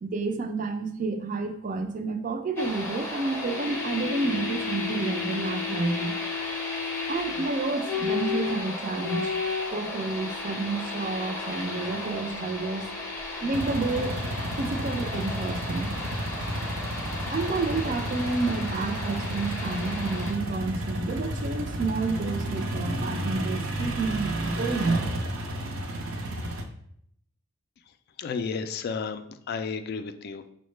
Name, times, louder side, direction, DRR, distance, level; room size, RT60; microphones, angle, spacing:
voice 1, 0.0-6.1 7.1-9.3 9.7-12.9 13.4-14.2 14.6-15.9 17.3-25.0, right 3 dB, 40° right, 6 dB, 0.4 m, -30 dB
sound 1, 2.5-20.3, left 3 dB, 10° left, 0.6 m, -33 dB
sound 2, 13.5-26.6, right 1 dB, 90° right, 0.6 m, -32 dB
voice 2, 28.2-30.5, left 5 dB, 50° left, 9 dB, 0.3 m, -32 dB
6.2 x 2.1 x 3.1 m, 0.69 s
head